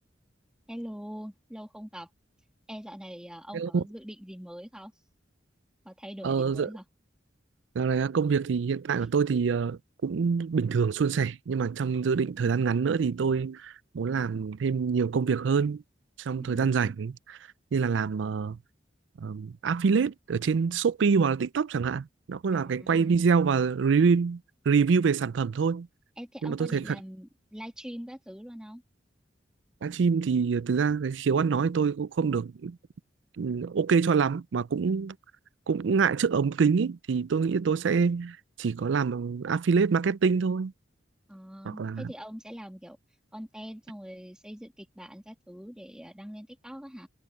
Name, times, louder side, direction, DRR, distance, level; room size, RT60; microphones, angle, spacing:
voice 1, 0.7-2.1 2.7-4.9 5.8-6.8 16.4-16.9 22.5-23.2 26.2-28.8 41.3-43.0 43.3-47.1, equal, 5° right, 2.1 m, -43 dB
voice 2, 6.2-6.7 7.8-15.8 16.2-17.1 17.7-18.6 19.2-24.4 24.7-25.9 26.4-27.0 29.8-32.8 33.4-35.2 35.7-40.7 41.6-42.1, right 5 dB, 85° right, 0.4 m, -26 dB
head